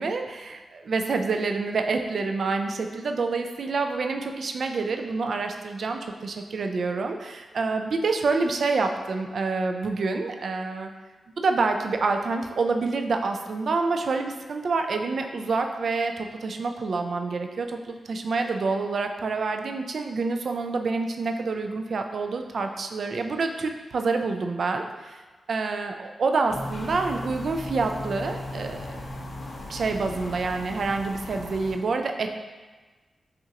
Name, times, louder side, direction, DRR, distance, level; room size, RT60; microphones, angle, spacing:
voice 1, 0.0-10.9 11.4-25.2 25.5-29.0 29.7-32.3, right 4 dB, 65° right, 5 dB, 0.3 m, -27 dB
sound 1, 26.5-31.7, left 2 dB, 60° left, 0.7 m, -37 dB
5.7 x 2.5 x 2.8 m, 1.3 s
cardioid pair, 80°, 0 cm